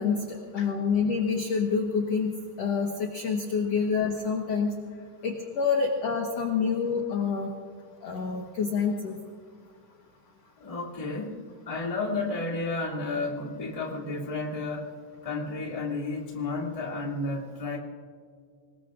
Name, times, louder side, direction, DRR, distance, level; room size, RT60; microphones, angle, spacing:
voice 1, 0.0-2.3 2.6-4.7 5.2-7.5 8.0-9.2, left 5 dB, 65° left, 1 dB, 1.6 m, -27 dB
voice 2, 10.6-11.4 11.6-14.9 15.2-17.8, left 3 dB, 15° left, -2 dB, 1.6 m, -32 dB
26.0 x 21.0 x 2.5 m, 2.1 s
omnidirectional pair, 4.7 m